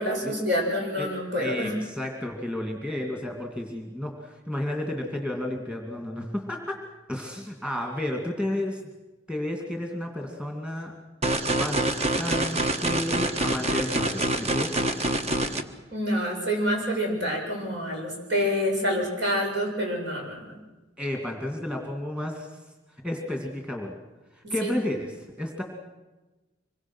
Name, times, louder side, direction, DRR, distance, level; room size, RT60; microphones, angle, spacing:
voice 1, 0.0-1.7 15.9-20.5 24.6-24.7, equal, 65° right, 0 dB, 7.3 m, -27 dB
voice 2, 1.3-6.8 7.1-8.8 9.3-10.9 11.5-11.9 12.2-14.8 21.0-22.5 23.0-23.9 24.3-25.6, left 1 dB, 5° right, 2 dB, 2.6 m, -32 dB
sound 1, 11.2-15.6, right 1 dB, 35° right, 1.3 m, -26 dB
25.5 x 23.0 x 6.3 m, 1.1 s
head